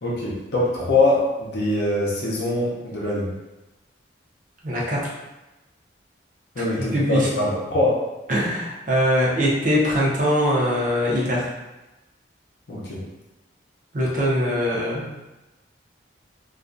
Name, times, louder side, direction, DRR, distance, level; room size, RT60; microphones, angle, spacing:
voice 1, 0.0-3.3 6.6-8.0 12.7-13.0, left 2 dB, 60° left, -5 dB, 0.6 m, -23 dB
voice 2, 4.6-5.1 6.6-6.7 6.9-7.3 8.3-11.5 13.9-15.1, equal, 45° right, -4 dB, 0.6 m, -22 dB
2.3 x 2.2 x 2.5 m, 1.0 s
head